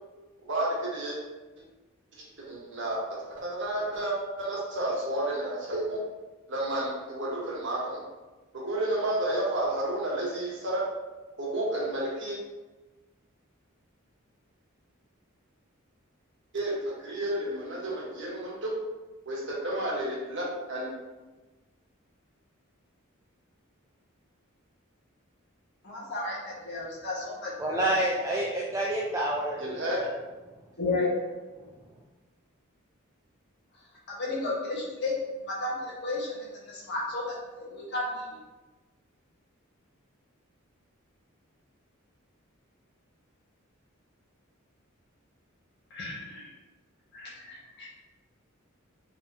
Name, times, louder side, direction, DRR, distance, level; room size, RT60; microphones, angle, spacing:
voice 1, 0.5-1.2 2.5-3.0 3.4-6.0 6.5-8.0 8.5-10.9 11.4-12.4 16.5-18.8 19.2-20.9 29.6-30.0, right 1 dB, 60° right, -4 dB, 1.3 m, -31 dB
voice 2, 25.8-28.0 30.8-31.1 34.2-35.1 35.6-36.3 36.7-37.2 37.6-38.2 45.9-46.4 47.1-47.9, left 2 dB, 55° left, -5 dB, 1.5 m, -33 dB
voice 3, 27.6-30.1, right 1 dB, 15° right, -4 dB, 0.4 m, -28 dB
4.4 x 3.4 x 2.9 m, 1.2 s
head